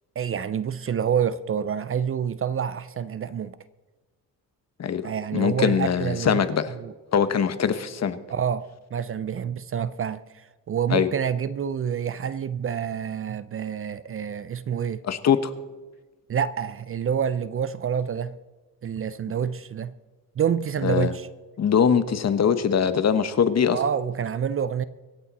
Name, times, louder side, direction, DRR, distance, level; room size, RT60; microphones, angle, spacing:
voice 1, 0.2-3.6 5.0-6.4 6.8-6.9 8.3-15.0 16.3-18.4 18.8-19.9 20.4-21.3 23.7-24.8, right 8 dB, 40° right, 0.4 m, -27 dB
voice 2, 4.8-6.7 7.1-8.2 10.9-11.1 15.0-15.5 20.8-21.1 21.6-23.8, left 7 dB, 45° left, 1.0 m, -22 dB
25.0 x 8.7 x 4.1 m
cardioid pair, 135°, 35 cm